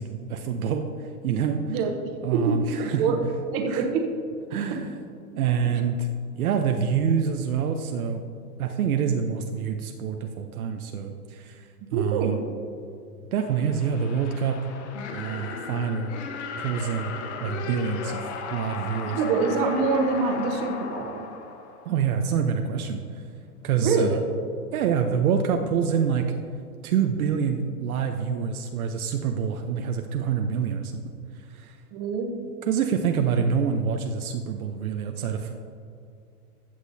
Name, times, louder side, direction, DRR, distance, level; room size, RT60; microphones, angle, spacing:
voice 1, 0.0-1.8 2.2-3.2 3.7-3.8 4.5-4.9 5.4-6.1 6.4-8.2 8.6-12.4 13.3-14.6 15.1-16.1 16.6-17.1 17.4-19.2 21.9-23.2 23.6-24.2 24.7-26.3 26.8-31.1 31.5-31.8 32.7-35.6, right 7 dB, 70° right, 5 dB, 0.8 m, -26 dB
voice 2, 1.7-3.2 3.5-4.1 4.7-4.8 11.9-12.4 18.9-21.2 23.8-24.2 31.9-32.4, right 4 dB, 35° right, 4 dB, 1.1 m, -25 dB
sound 1, 13.4-22.2, left 5 dB, 45° left, 1.2 m, -36 dB
14.5 x 8.1 x 2.7 m, 2.4 s
hypercardioid pair, 140°, 45 cm